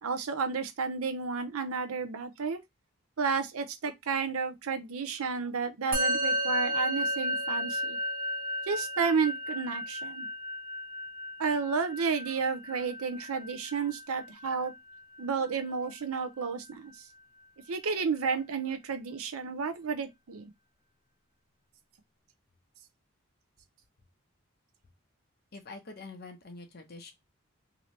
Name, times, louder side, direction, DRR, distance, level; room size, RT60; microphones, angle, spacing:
voice 1, 0.0-2.6 3.2-8.0 8.7-10.3 11.4-14.7 15.2-17.1 17.7-20.5, right 5 dB, 80° right, 0.6 m, -32 dB
Musical instrument, 5.9-15.5, left 1 dB, 40° right, 0.9 m, -33 dB
voice 2, 25.5-27.1, left 3 dB, 45° left, 0.7 m, -45 dB
2.9 x 2.7 x 3.0 m
head